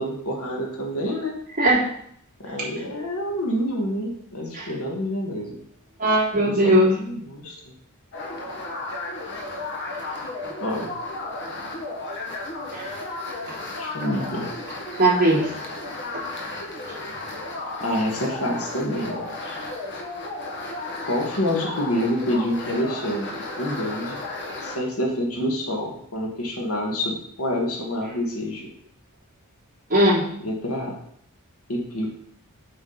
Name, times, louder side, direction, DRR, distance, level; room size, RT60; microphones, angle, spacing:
voice 1, 0.0-1.3 2.4-5.6 6.4-7.5 10.6-10.9 13.8-14.5 17.8-19.2 21.0-23.3 23.6-24.2 24.6-28.7 30.4-31.0 31.7-32.1, equal, 75° left, 0 dB, 1.7 m, -27 dB
voice 2, 6.0-6.9 12.7-12.9 15.0-15.5 29.9-30.3, right 1 dB, 40° right, -7 dB, 3.1 m, -18 dB
sound 1, 8.1-24.8, left 2 dB, 55° left, 1.4 m, -33 dB
8.2 x 5.1 x 3.9 m, 0.68 s
head